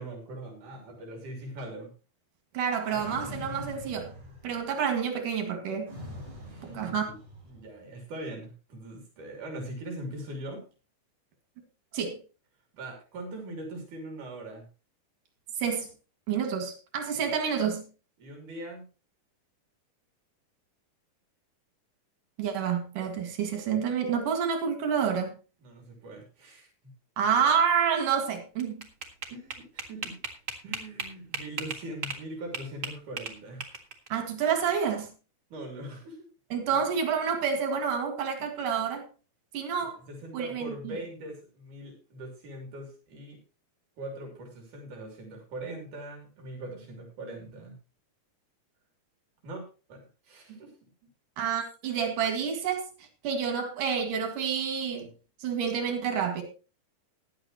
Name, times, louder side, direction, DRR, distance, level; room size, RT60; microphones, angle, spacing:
voice 1, 0.0-1.9 6.4-7.2 7.5-10.6 12.7-14.7 17.1-17.2 18.2-18.8 25.6-26.9 29.3-30.1 30.6-33.8 35.5-36.3 36.7-36.8 38.4-38.6 39.8-43.4 44.0-47.8 49.4-50.8, right 1 dB, 75° right, 4.5 m, -41 dB
voice 2, 2.5-4.1 4.4-5.9 6.7-7.1 11.9-12.2 15.6-15.9 16.3-17.8 22.4-25.3 27.2-28.8 34.1-35.1 36.5-39.0 39.5-40.0 40.3-40.7 51.4-52.8 53.2-55.1 55.4-56.4, right 7 dB, 90° right, 3.6 m, -28 dB
sound 1, 2.8-4.7 5.9-7.7, left 1 dB, 20° right, 7.1 m, -43 dB
sound 2, 28.4-32.2 32.5-34.1, right 4 dB, 35° right, 1.4 m, -36 dB
15.0 x 11.0 x 3.0 m
omnidirectional pair, 3.6 m